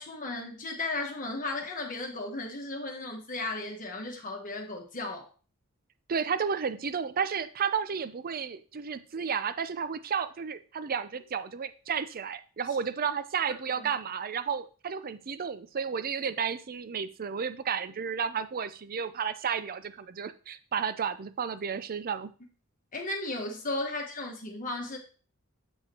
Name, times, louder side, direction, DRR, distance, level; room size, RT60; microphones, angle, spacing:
voice 1, 0.0-5.3 13.8-13.9 22.9-25.0, left 2 dB, 35° left, 1 dB, 1.2 m, -35 dB
voice 2, 6.1-22.3, right 6 dB, 40° right, 13 dB, 0.5 m, -32 dB
7.1 x 7.1 x 2.9 m, 0.38 s
head